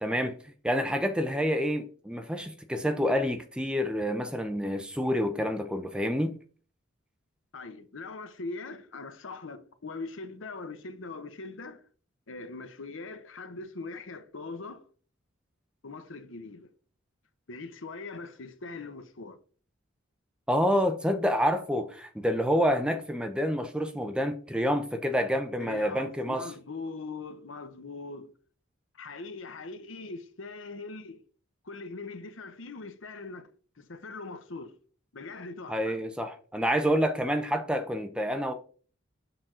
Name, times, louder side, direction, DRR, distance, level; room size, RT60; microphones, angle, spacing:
voice 1, 0.0-0.4 0.6-6.3 20.5-26.5 35.7-38.5, equal, 5° right, 0.6 m, -28 dB
voice 2, 7.5-11.8 12.3-14.8 15.8-16.7 17.5-19.4 25.6-28.3 28.9-31.2 31.6-33.5 33.8-34.7 35.1-36.0, left 3 dB, 75° left, 0.8 m, -41 dB
6.8 x 5.9 x 3.8 m
head